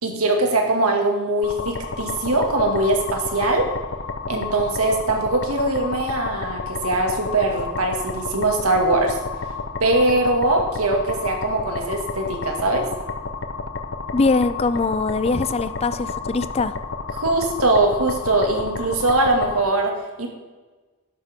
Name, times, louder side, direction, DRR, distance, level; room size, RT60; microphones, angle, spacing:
voice 1, 0.0-3.7 4.3-9.2 9.8-12.9 17.1-20.3, right 2 dB, 75° right, 2 dB, 2.2 m, -21 dB
sound 1, 1.4-19.6, left 4 dB, 55° left, 0.9 m, -31 dB
voice 2, 14.1-16.7, left 3 dB, 25° left, 13 dB, 0.4 m, -22 dB
12.0 x 11.0 x 3.7 m, 1.3 s
head